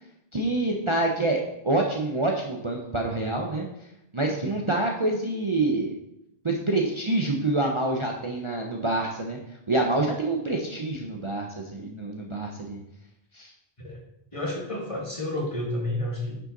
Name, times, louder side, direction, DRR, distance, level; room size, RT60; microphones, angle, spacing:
voice 1, 0.3-3.7 4.1-5.9 6.4-9.4 9.7-12.8 13.3-13.5, right 2 dB, 30° right, 0 dB, 0.8 m, -26 dB
voice 2, 14.3-16.4, left 1 dB, 30° left, -2 dB, 1.9 m, -30 dB
9.6 x 5.7 x 3.9 m, 0.82 s
omnidirectional pair, 1.1 m